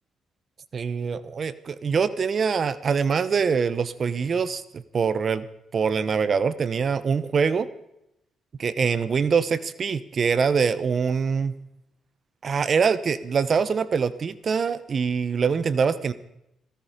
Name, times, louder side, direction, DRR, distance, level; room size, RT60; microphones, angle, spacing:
voice 1, 0.7-5.5 5.7-7.7 8.6-11.5 12.4-16.1, right 6 dB, 45° right, 16 dB, 0.9 m, -24 dB
16.5 x 15.0 x 5.1 m, 0.82 s
cardioid pair, 90°, 0 cm